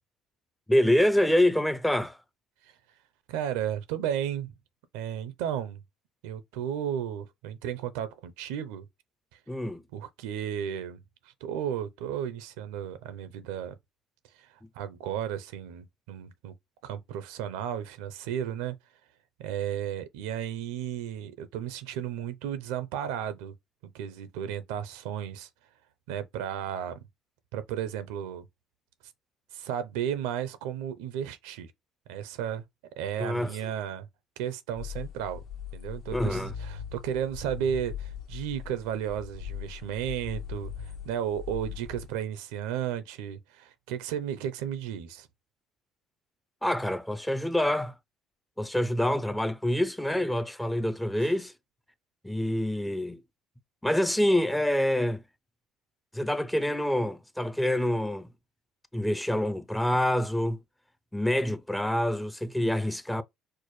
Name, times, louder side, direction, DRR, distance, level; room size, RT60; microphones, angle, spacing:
voice 1, 0.7-2.2 9.5-9.8 33.2-33.6 36.1-36.5 46.6-47.9 48.6-51.5 52.2-53.2 53.8-55.2 56.1-58.3 58.9-60.6 61.1-63.2, left 1 dB, 5° left, 0.4 m, -26 dB
voice 2, 3.3-4.5 4.9-5.8 6.2-8.8 9.9-11.0 11.4-13.8 14.4-14.5 14.8-16.5 16.8-18.8 19.4-23.5 23.9-25.5 26.1-27.0 27.5-28.5 29.5-31.7 32.1-32.6 33.0-34.1 34.4-35.4 35.7-45.3 51.2-51.3, right 9 dB, 90° right, 0.5 m, -34 dB
sound 1, 34.8-42.1, left 8 dB, 60° left, 0.8 m, -40 dB
4.5 x 2.1 x 3.1 m
supercardioid pair, 95°, 0 cm